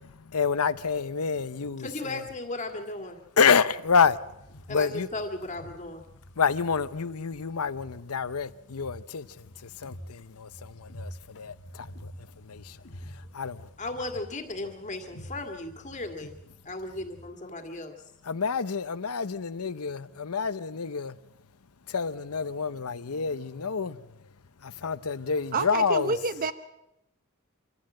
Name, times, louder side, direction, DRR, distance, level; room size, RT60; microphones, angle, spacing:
voice 1, 0.3-2.2 3.4-4.2 4.7-5.1 6.4-9.3 9.8-10.5 11.0-11.1 11.4-11.5 12.5-12.6 13.3-13.6 18.3-21.1 21.9-24.0 24.8-26.1, left 5 dB, 90° left, 0.8 m, -27 dB
voice 2, 1.8-3.2 4.7-6.0 13.8-16.4 16.7-18.0, left 2 dB, 35° left, 2.0 m, -36 dB
sound 1, 3.8-17.3, equal, 60° left, 1.6 m, -48 dB
voice 3, 25.5-26.5, right 4 dB, 40° right, 0.8 m, -28 dB
25.5 x 14.5 x 7.7 m
head